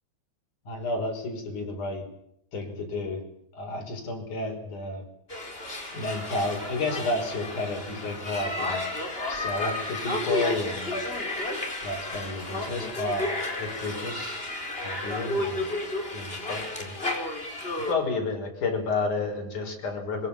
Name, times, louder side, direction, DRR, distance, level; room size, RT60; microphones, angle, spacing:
voice 1, 0.7-2.0 2.5-3.2 3.5-5.0 5.9-8.8 9.3-11.0 11.8-13.3 13.6-14.3 14.7-15.7 16.1-17.0 17.9-20.3, left 3 dB, 45° left, 2 dB, 7.0 m, -31 dB
sound 1, 5.3-17.9, left 2 dB, 15° left, 4.3 m, -32 dB
25.0 x 25.0 x 7.3 m, 0.77 s
omnidirectional pair, 5.2 m